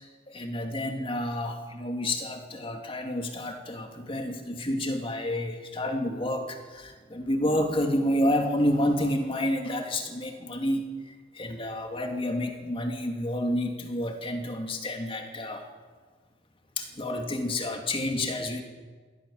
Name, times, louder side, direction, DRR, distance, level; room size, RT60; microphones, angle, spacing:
voice 1, 0.3-15.6 16.8-18.6, left 1 dB, 30° left, 4 dB, 2.5 m, -29 dB
22.5 x 16.5 x 7.2 m, 1.5 s
head